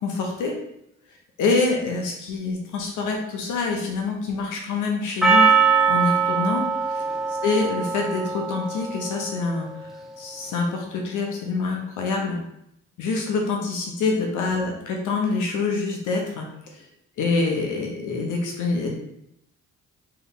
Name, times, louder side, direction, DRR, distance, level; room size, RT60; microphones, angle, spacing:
voice 1, 0.0-0.5 1.4-5.5 5.9-7.0 7.4-9.7 10.2-12.4 13.0-16.8 17.2-18.9, left 3 dB, 80° left, 1 dB, 1.1 m, -26 dB
Percussion, 5.2-9.5, right 5 dB, ahead, 0.7 m, -22 dB
3.4 x 3.4 x 4.1 m, 0.77 s
cardioid pair, 90°, 30 cm